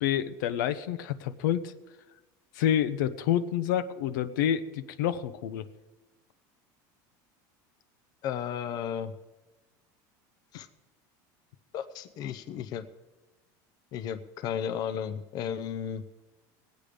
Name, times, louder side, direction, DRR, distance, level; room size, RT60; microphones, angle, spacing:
voice 1, 0.0-1.7 2.5-5.7, left 10 dB, 90° left, 12 dB, 0.8 m, -28 dB
voice 2, 8.2-9.1 10.5-10.7 11.7-12.8 13.9-16.0, left 8 dB, 40° left, 12 dB, 0.7 m, -34 dB
19.5 x 8.4 x 5.1 m, 1.2 s
cardioid pair, 160°, 10 cm